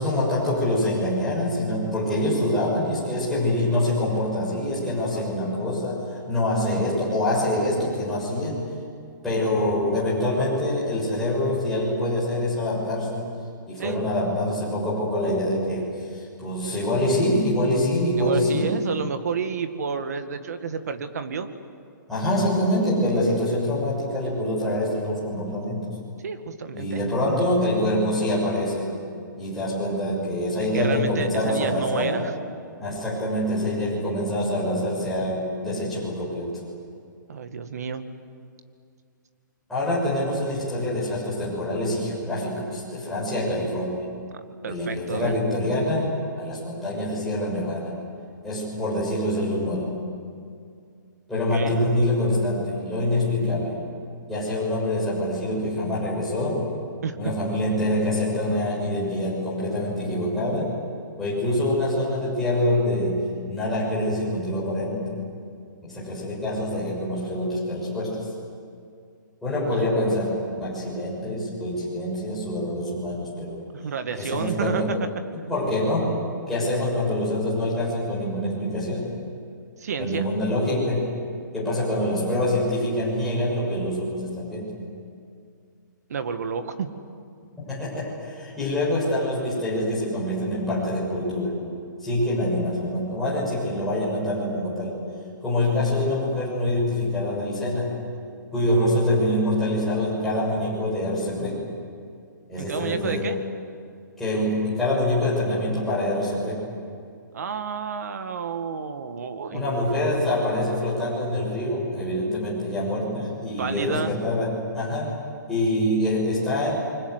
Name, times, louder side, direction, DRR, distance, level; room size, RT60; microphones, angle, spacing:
voice 1, 0.0-8.6 9.2-13.3 13.7-18.7 22.1-25.9 26.7-28.9 29.4-32.1 32.8-36.6 39.7-44.0 44.7-46.1 46.4-47.9 48.4-49.9 51.3-53.7 54.3-56.6 57.2-60.7 61.2-63.2 63.5-65.2 65.8-68.3 69.4-73.6 74.2-74.9 75.5-76.1 76.5-79.1 80.0-81.2 81.5-84.7 87.6-91.6 92.0-95.0 95.4-98.0 98.5-101.6 102.5-103.3 104.2-106.6 109.5-115.1 115.5-116.8, left 1 dB, 5° left, -8 dB, 6.8 m, -25 dB
voice 2, 18.2-21.5 26.2-27.0 30.7-32.3 37.3-38.1 44.6-45.4 51.5-51.8 57.0-57.3 69.7-69.8 73.7-75.0 79.8-80.3 86.1-86.9 102.6-103.4 107.3-109.6 113.6-114.2, right 6 dB, 50° right, 9 dB, 1.9 m, -30 dB
28.5 x 24.5 x 8.2 m, 2.3 s
hypercardioid pair, 180°, 11 cm